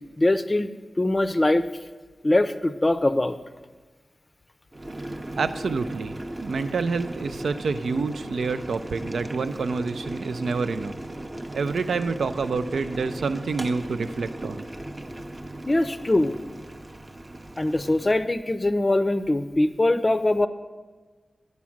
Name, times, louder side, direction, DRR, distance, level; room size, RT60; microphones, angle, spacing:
voice 1, 0.2-0.7 1.0-1.6 2.2-3.4 15.7-16.4 17.6-20.5, left 1 dB, 25° left, 11 dB, 0.5 m, -22 dB
Boiling, 4.7-18.2, right 1 dB, 25° right, 0.6 m, -37 dB
voice 2, 5.4-10.9 11.5-14.6, right 4 dB, 90° right, 11 dB, 0.4 m, -28 dB
9.5 x 6.2 x 7.2 m, 1.3 s
wide cardioid pair, 90°, 0 cm